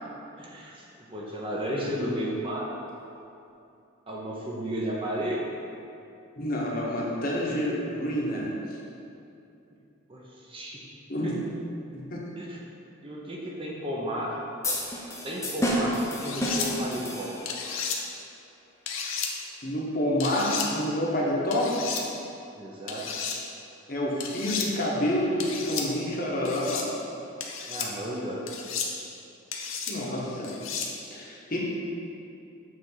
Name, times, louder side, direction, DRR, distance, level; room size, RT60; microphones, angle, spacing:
voice 1, 0.4-2.7 4.1-5.4 10.1-10.8 11.2-11.3 12.4-12.6 13.0-14.4 15.2-17.3 22.6-23.1 27.7-28.4 28.9-29.1, equal, 25° right, -3 dB, 0.7 m, -33 dB
voice 2, 6.4-8.5 11.1-11.3 11.9-12.3 19.6-21.7 23.9-26.9 29.9-30.5 31.1-31.6, left 1 dB, 40° left, -4 dB, 1.1 m, -28 dB
sound 1, 14.6-17.7, equal, 15° left, 0.8 m, -30 dB
sound 2, 16.2-16.7 17.4-18.0 18.9-19.3 20.2-20.7 21.5-22.0 22.9-23.4 24.2-24.7 25.4-25.9 26.4-26.9 27.4-27.9 28.5-28.9 29.5-29.9 30.4-30.9, left 6 dB, 70° left, 0.7 m, -33 dB
7.8 x 3.4 x 5.6 m, 2.7 s
head